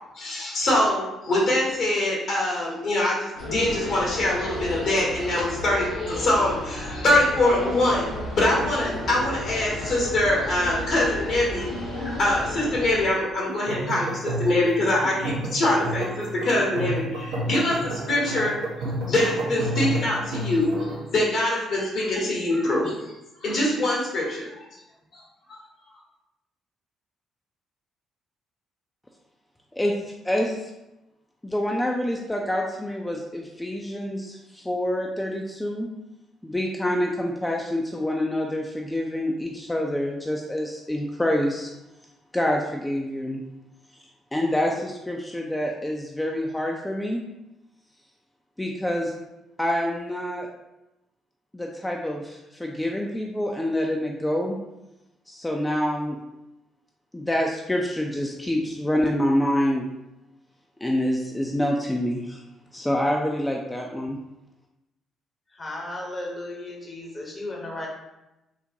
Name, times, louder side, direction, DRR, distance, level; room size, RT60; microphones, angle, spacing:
voice 1, 0.1-8.1 8.3-11.7 12.2-18.6 19.1-22.9 23.4-24.7 25.1-25.2 25.5-25.6, left 1 dB, 60° left, -3 dB, 1.1 m, -24 dB
sound 1, 3.3-13.1, left 1 dB, 80° left, 0.9 m, -33 dB
sound 2, 13.5-21.1, right 1 dB, 70° right, 0.6 m, -31 dB
voice 2, 30.2-30.7 31.4-35.9 36.4-41.7 42.3-43.4 44.3-47.2 48.6-49.1 49.6-50.5 51.5-54.6 55.3-56.2 57.1-59.8 60.8-62.4 62.7-64.2, left 1 dB, 15° left, 0 dB, 0.4 m, -26 dB
voice 3, 65.5-67.9, left 1 dB, 35° left, -1 dB, 0.9 m, -35 dB
3.8 x 2.1 x 2.6 m, 0.94 s
hypercardioid pair, 45°, 0 cm